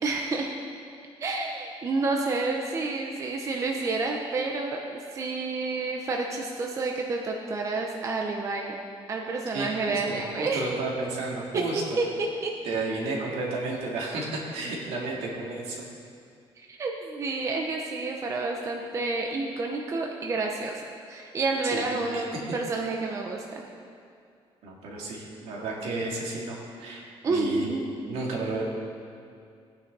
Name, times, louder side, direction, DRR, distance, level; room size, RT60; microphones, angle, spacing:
voice 1, 0.0-0.5 1.2-8.7 9.1-10.7 12.0-12.5 16.6-20.8 21.1-23.6 27.2-27.8, right 3 dB, 30° right, 1 dB, 0.9 m, -29 dB
voice 2, 9.5-11.8 12.6-15.8 21.7-22.2 24.6-27.8 28.0-28.6, right 2 dB, 80° right, -3 dB, 2.7 m, -32 dB
18.0 x 9.6 x 4.1 m, 2.4 s
cardioid pair, 170°, 10 cm